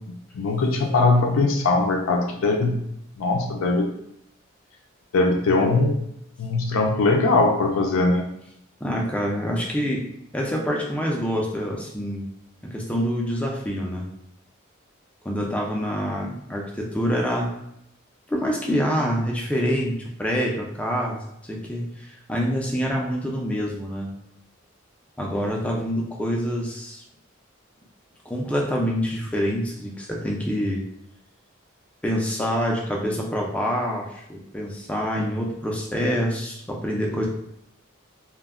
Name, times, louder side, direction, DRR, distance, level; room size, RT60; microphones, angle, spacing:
voice 1, 0.3-2.8 3.2-3.9 5.1-6.0 6.4-8.3, left 3 dB, 85° left, 2 dB, 0.4 m, -20 dB
voice 2, 8.8-10.0 10.3-12.3 12.6-14.1 15.2-17.5 18.3-24.1 25.2-27.0 28.3-30.9 32.0-37.3, equal, 5° left, -2 dB, 0.3 m, -26 dB
2.2 x 2.0 x 3.4 m, 0.77 s
head